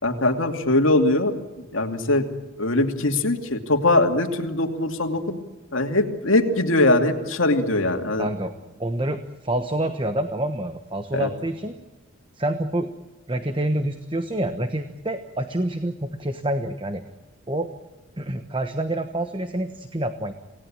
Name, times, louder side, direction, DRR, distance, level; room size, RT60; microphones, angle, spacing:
voice 1, 0.0-1.3 1.6-2.2 2.6-5.4 5.7-8.3 11.1-11.3, left 2 dB, 75° left, 5 dB, 2.6 m, -21 dB
voice 2, 8.2-8.5 8.8-11.8 12.3-12.9 13.3-17.0 17.5-17.7 18.2-20.3, right 1 dB, 25° right, 8 dB, 1.1 m, -27 dB
27.5 x 18.0 x 8.8 m, 1.2 s
head